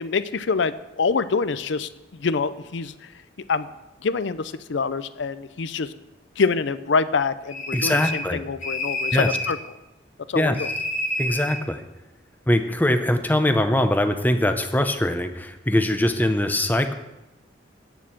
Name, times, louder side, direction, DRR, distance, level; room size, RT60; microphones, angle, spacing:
voice 1, 0.0-3.1 3.5-3.7 4.0-5.9 6.4-9.6 10.3-10.7, left 4 dB, 75° left, 14 dB, 0.5 m, -25 dB
sound 1, 7.5-8.3 8.6-9.6 10.6-11.6, left 1 dB, 40° left, 1.5 m, -28 dB
voice 2, 7.7-8.4 9.1-9.3 10.3-10.6 11.2-11.8 12.5-16.9, left 1 dB, 10° left, 7 dB, 0.7 m, -22 dB
8.3 x 7.0 x 7.4 m, 0.96 s
head